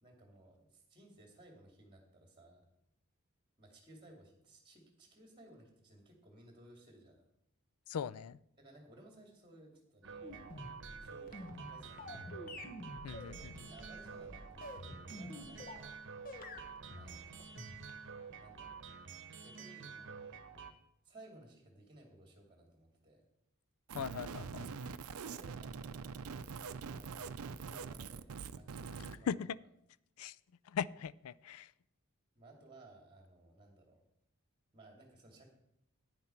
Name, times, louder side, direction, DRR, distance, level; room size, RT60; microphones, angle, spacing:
voice 1, 0.0-2.6 3.6-7.3 8.6-10.7 11.0-12.4 13.1-16.0 16.9-17.6 18.4-18.8 19.4-20.2 21.0-23.3 25.2-26.0 26.9-29.4 32.3-34.0 34.7-35.5, right 1 dB, 20° right, 2.4 m, -59 dB
voice 2, 7.9-8.4 13.0-13.5 23.9-24.7 29.3-29.5 30.2-30.4 30.7-31.7, left 7 dB, 75° left, 0.4 m, -39 dB
sound 1, 10.0-20.7, right 6 dB, 55° right, 1.0 m, -49 dB
sound 2, 10.2-15.9 16.2-18.1, left 1 dB, 40° left, 1.3 m, -48 dB
sound 3, 23.9-29.2, right 5 dB, 75° right, 0.5 m, -44 dB
10.5 x 9.8 x 4.4 m
head